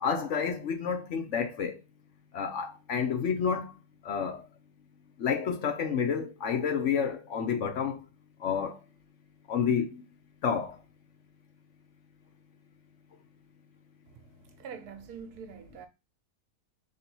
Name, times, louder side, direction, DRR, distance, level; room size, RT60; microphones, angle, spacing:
voice 1, 0.0-1.8 2.3-3.7 4.0-4.4 5.2-8.0 8.4-8.8 9.5-10.0 10.4-10.8, left 6 dB, 60° left, 0.9 m, -29 dB
voice 2, 14.1-15.9, right 6 dB, 90° right, 1.3 m, -45 dB
3.9 x 3.1 x 4.3 m
omnidirectional pair, 1.6 m